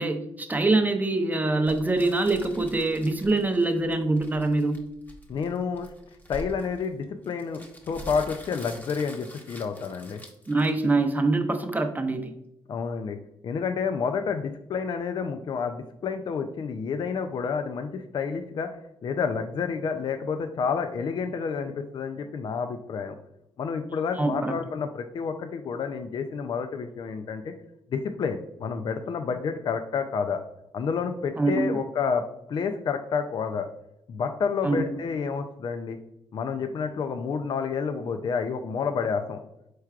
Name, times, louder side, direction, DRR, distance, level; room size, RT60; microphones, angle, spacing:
voice 1, 0.0-4.9 10.5-12.3 24.2-24.6 31.4-31.8 34.6-34.8, right 2 dB, 15° right, 6 dB, 0.6 m, -24 dB
sound 1, 1.7-11.1, equal, 20° left, 1.0 m, -45 dB
voice 2, 5.3-5.9 6.3-10.2 12.7-13.2 13.4-18.7 19.0-23.1 23.6-27.5 27.9-30.4 30.7-33.7 34.1-36.0 36.3-39.4, left 5 dB, 50° left, 8 dB, 0.4 m, -29 dB
4.6 x 4.5 x 2.4 m, 0.83 s
cardioid pair, 80°, 10 cm